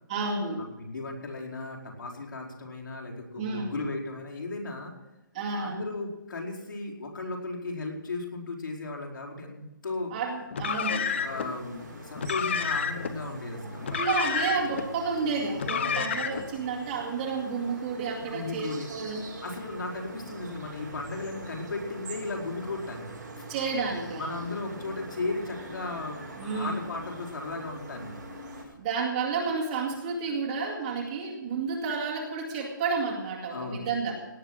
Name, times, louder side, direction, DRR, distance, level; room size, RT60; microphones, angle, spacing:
voice 1, 0.1-0.6 3.3-3.7 5.3-5.8 10.1-11.1 13.6-19.2 23.5-24.5 26.3-26.8 28.7-34.2, right 4 dB, 20° right, -3 dB, 2.2 m, -31 dB
voice 2, 0.8-4.9 5.5-10.1 11.1-13.8 15.7-16.1 18.2-18.9 19.4-23.1 23.4-23.5 24.1-28.1 28.6-28.7 33.5-33.9, left 3 dB, 70° left, 0 dB, 4.8 m, -36 dB
Car, 10.5-11.5 12.1-13.1 13.8-14.8 15.5-16.5, left 6 dB, 35° left, 1.1 m, -30 dB
sound 1, 10.7-28.6, right 2 dB, 50° right, 6.4 m, -44 dB
18.0 x 9.9 x 6.3 m, 1.0 s
hypercardioid pair, 175°, 11 cm